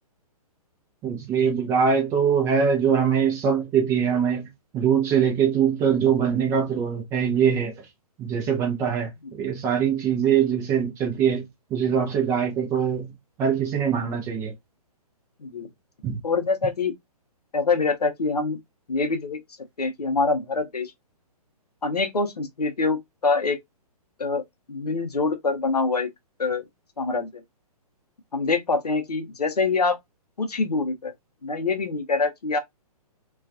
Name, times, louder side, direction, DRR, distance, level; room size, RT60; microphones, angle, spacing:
voice 1, 1.0-4.5 4.7-7.7 8.2-13.1 13.4-14.5 16.0-16.2, right 7 dB, 15° right, 0.5 m, -23 dB
voice 2, 16.2-16.9 17.5-18.6 18.9-19.4 19.8-20.9 21.8-23.6 24.2-24.4 24.7-26.1 26.4-26.6 27.0-27.4 28.3-30.0 30.4-31.1 31.4-32.6, left 4 dB, 80° left, 0.7 m, -25 dB
2.3 x 2.3 x 2.4 m
figure-of-eight pair, 125°, 20 cm